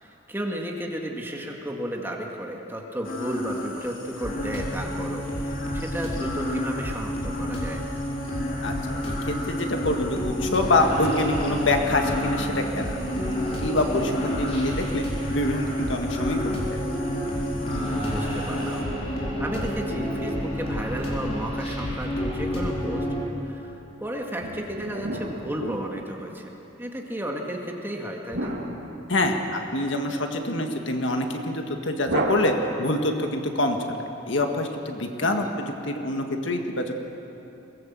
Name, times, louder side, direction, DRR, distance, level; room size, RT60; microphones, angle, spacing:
voice 1, 0.0-7.8 18.0-18.8 19.1-23.1 23.4-28.6 35.2-35.6, equal, 10° right, 0 dB, 2.1 m, -33 dB
sound 1, 3.0-18.8, left 1 dB, 50° left, 3.0 m, -36 dB
sound 2, 4.2-23.3, equal, 30° left, 4.3 m, -30 dB
voice 2, 8.6-13.3 13.6-16.8 29.1-37.0, left 1 dB, 65° left, 4 dB, 1.8 m, -26 dB
sound 3, 24.4-26.4 28.3-29.7 32.0-33.1, right 1 dB, 85° right, 2.7 m, -32 dB
22.5 x 18.5 x 7.6 m, 2.9 s
head